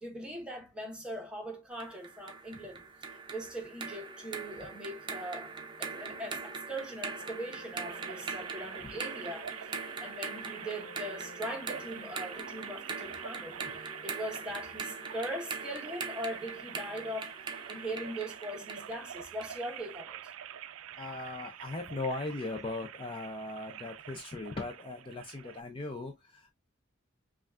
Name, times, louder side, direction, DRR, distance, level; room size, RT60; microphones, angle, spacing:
voice 1, 0.0-5.5 5.8-20.3, right 1 dB, 5° right, 1.1 m, -41 dB
sound 1, 1.8-19.6, right 5 dB, 25° right, 0.7 m, -42 dB
sound 2, 5.9-6.6 7.2-13.4, left 1 dB, 65° left, 0.8 m, -55 dB
sound 3, 7.9-25.6, right 9 dB, 80° right, 0.4 m, -47 dB
voice 2, 21.0-26.5, left 2 dB, 25° left, 0.5 m, -38 dB
5.5 x 2.4 x 2.4 m
head